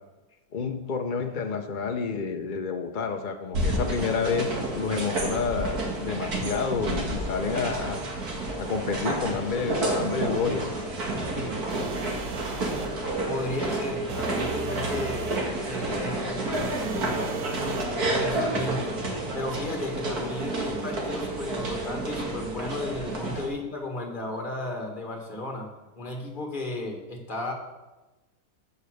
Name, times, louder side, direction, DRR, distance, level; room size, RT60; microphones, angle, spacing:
voice 1, 0.5-4.5 4.8-8.0 8.6-10.7, left 5 dB, 55° left, 5 dB, 0.5 m, -29 dB
sound 1, 3.5-23.5, right 2 dB, 60° right, 2.4 m, -30 dB
sound 2, 11.7-13.0 14.1-15.5 16.5-18.0, right 6 dB, 90° right, 1.5 m, -38 dB
voice 2, 13.2-15.4 15.6-17.3 18.0-19.0 19.3-25.7 26.0-27.5, left 2 dB, 30° left, 2 dB, 1.8 m, -34 dB
13.5 x 5.6 x 6.4 m, 1.1 s
omnidirectional pair, 1.8 m